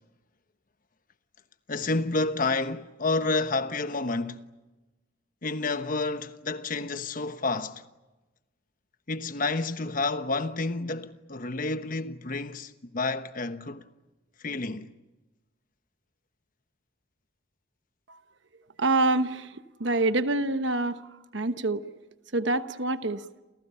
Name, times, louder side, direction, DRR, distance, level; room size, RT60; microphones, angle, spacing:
voice 1, 1.7-4.4 5.4-7.8 9.1-13.8 14.4-14.9, left 3 dB, 45° left, 1.2 m, -29 dB
voice 2, 18.8-19.5 19.8-21.0 21.3-21.8 22.3-23.2, right 2 dB, 70° right, 1.1 m, -25 dB
29.5 x 29.0 x 5.7 m
head